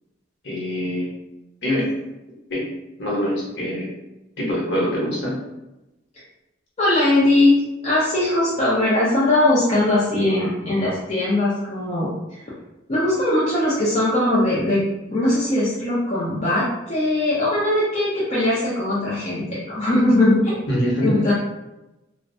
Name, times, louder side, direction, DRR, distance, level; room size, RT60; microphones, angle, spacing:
voice 1, 0.4-1.1 1.6-1.9 2.5-2.6 3.0-3.9 4.4-5.3 20.7-21.1, equal, 60° left, -5 dB, 1.0 m, -24 dB
voice 2, 6.8-12.4 12.9-14.8 15.1-20.6 21.0-21.3, left 1 dB, 35° left, -8 dB, 0.5 m, -20 dB
2.4 x 2.0 x 2.5 m, 0.98 s
head